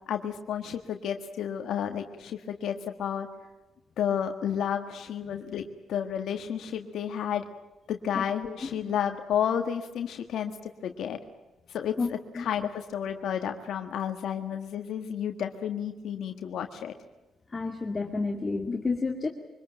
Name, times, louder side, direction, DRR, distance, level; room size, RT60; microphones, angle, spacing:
voice 1, 0.1-3.3 4.0-7.5 7.9-10.5 10.8-11.2 11.7-16.9, left 9 dB, 70° left, 5 dB, 1.6 m, -31 dB
voice 2, 17.5-19.3, left 4 dB, 30° left, 2 dB, 2.2 m, -30 dB
24.5 x 20.0 x 9.0 m, 1.1 s
cardioid pair, 90°, 0 cm